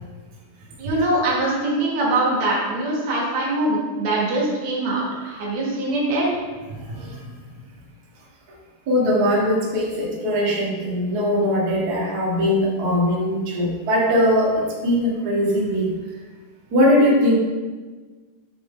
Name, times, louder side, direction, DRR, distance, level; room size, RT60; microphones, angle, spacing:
voice 1, 0.8-6.3, right 2 dB, 65° right, -3 dB, 2.4 m, -23 dB
voice 2, 6.9-7.2 8.9-15.9 16.7-17.4, equal, 85° right, -5 dB, 0.8 m, -20 dB
6.6 x 4.2 x 3.6 m, 1.4 s
omnidirectional pair, 3.9 m